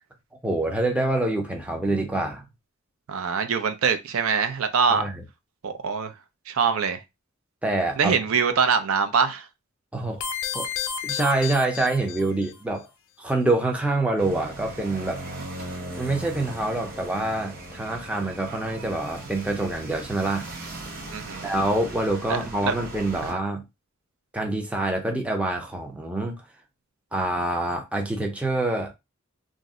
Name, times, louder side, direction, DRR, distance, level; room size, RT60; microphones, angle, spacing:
voice 1, 0.4-2.4 4.9-5.2 7.6-8.1 9.9-10.2 10.5-10.7 11.0-12.8 13.2-15.2 16.0-20.5 21.4-23.6 24.3-26.4 27.1-28.9, right 2 dB, 5° right, 0.5 m, -26 dB
voice 2, 3.1-5.1 5.6-6.1 6.5-7.0 8.0-9.5 21.1-21.5 22.3-22.4 22.6-22.7 23.2-23.4, right 6 dB, 80° right, 0.4 m, -23 dB
sound 1, 10.2-12.5, left 7 dB, 65° left, 0.4 m, -32 dB
sound 2, 14.2-23.3, right 2 dB, 45° right, 0.8 m, -38 dB
2.5 x 2.0 x 3.6 m
head